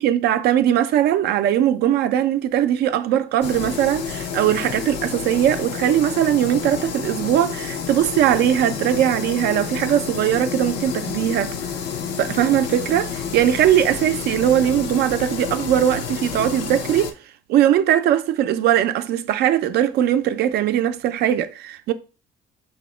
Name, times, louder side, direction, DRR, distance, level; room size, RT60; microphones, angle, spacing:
voice 1, 0.0-11.5 12.2-17.1 17.5-21.9, right 11 dB, 75° right, 0.5 m, -20 dB
sound 1, 3.4-17.1, left 7 dB, 85° left, 0.7 m, -30 dB
5.5 x 2.1 x 4.3 m
cardioid pair, 110°, 17 cm